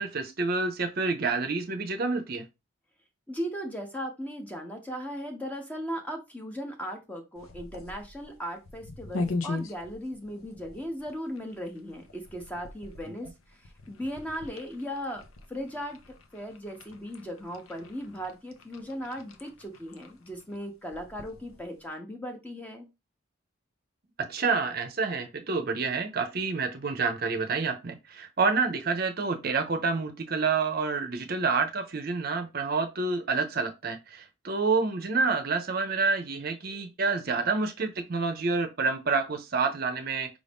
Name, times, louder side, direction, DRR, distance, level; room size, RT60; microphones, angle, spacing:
voice 1, 0.0-2.4 24.3-40.3, right 4 dB, 45° right, 0.6 m, -28 dB
voice 2, 3.3-15.2 15.5-16.0 16.3-22.9, equal, 5° left, 0.6 m, -37 dB
sound 1, 7.4-21.9, left 3 dB, 80° left, 0.7 m, -41 dB
4.9 x 2.6 x 3.4 m
head